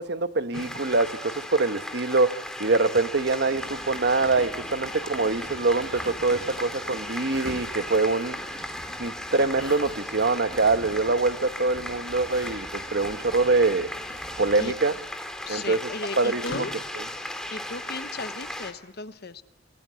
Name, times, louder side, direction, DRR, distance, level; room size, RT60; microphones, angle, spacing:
voice 1, 0.0-8.4 9.0-13.9 14.4-14.9 15.5-15.8 16.2-16.6 17.0-17.1, right 3 dB, 60° right, 1.2 m, -24 dB
sound 1, 0.5-2.1 3.0-6.4 6.9-8.3 9.3-10.3 10.7-10.8 11.1-11.2 12.0-13.0 13.7-16.9, left 2 dB, 80° left, 6.3 m, -47 dB
sound 2, 0.5-18.7, left 1 dB, 5° left, 3.0 m, -37 dB
sound 3, 3.4-14.7, right 1 dB, 35° right, 1.8 m, -45 dB
voice 2, 15.4-16.7 17.5-19.4, left 3 dB, 55° left, 1.1 m, -36 dB
28.0 x 19.5 x 9.7 m
head